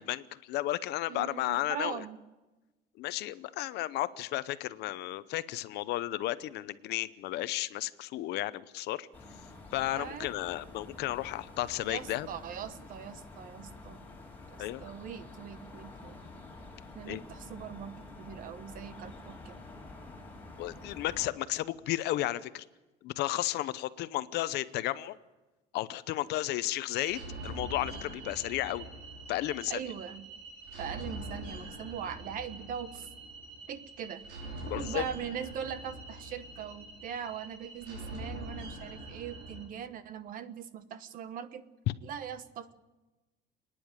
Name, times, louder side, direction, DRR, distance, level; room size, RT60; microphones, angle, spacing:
voice 1, 0.0-2.0 3.0-9.1 9.7-12.3 14.6-14.8 17.1-17.2 20.6-22.6 23.0-25.2 25.7-28.9 29.3-29.7 34.6-35.0, left 15 dB, 70° left, 15 dB, 0.8 m, -33 dB
voice 2, 1.1-2.2 10.0-10.3 11.8-14.0 14.5-16.1 16.9-19.6 29.7-30.3 30.8-33.1 33.7-34.2 34.7-41.6 42.0-42.7, right 8 dB, 50° right, 12 dB, 1.2 m, -41 dB
sound 1, 9.1-21.3, left 2 dB, 10° left, 2.8 m, -49 dB
sound 2, 27.0-39.7, right 1 dB, 75° right, 6.2 m, -44 dB
29.5 x 10.0 x 8.9 m, 1.1 s
cardioid pair, 170°, 18 cm